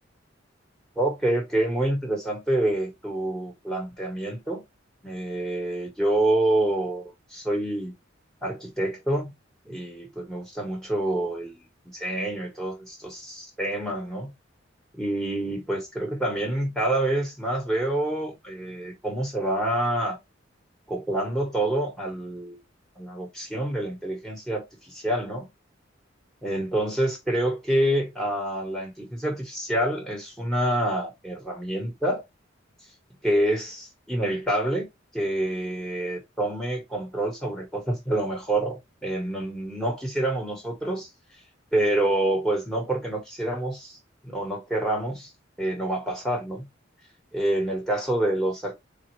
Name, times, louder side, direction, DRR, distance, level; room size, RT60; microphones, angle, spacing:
voice 1, 1.0-4.6 5.0-7.9 8.4-9.3 9.7-14.3 14.9-20.2 20.9-22.6 23.0-25.5 26.4-32.2 33.2-34.9 35.1-41.1 41.7-44.0 44.2-45.3 45.6-46.7 47.3-48.7, right 1 dB, ahead, 1.2 m, -27 dB
4.1 x 2.3 x 4.6 m
head